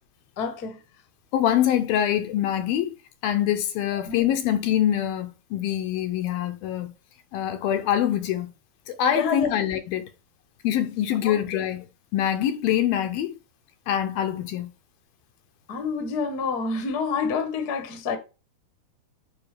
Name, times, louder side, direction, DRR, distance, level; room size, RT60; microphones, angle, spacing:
voice 1, 0.4-0.8 4.1-4.3 9.1-9.6 11.2-11.6 15.7-18.2, left 5 dB, 45° left, 1.3 m, -28 dB
voice 2, 1.3-2.9 3.2-6.9 7.3-8.5 8.9-10.1 10.6-11.9 12.1-13.4 13.9-14.7, left 11 dB, 75° left, 2.5 m, -24 dB
9.9 x 5.9 x 3.4 m
omnidirectional pair, 4.7 m